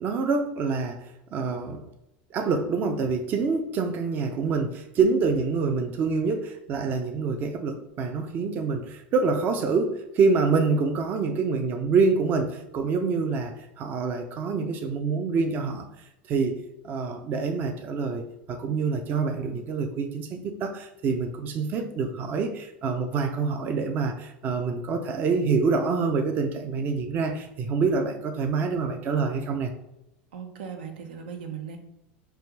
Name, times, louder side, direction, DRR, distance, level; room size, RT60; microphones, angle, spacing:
voice 1, 0.0-1.8 2.3-15.9 16.3-18.2 18.5-29.7, right 4 dB, 35° right, 5 dB, 0.5 m, -26 dB
voice 2, 30.3-31.8, right 7 dB, 85° right, 4 dB, 0.8 m, -38 dB
3.4 x 2.5 x 4.5 m, 0.88 s
supercardioid pair, 135°, 5 cm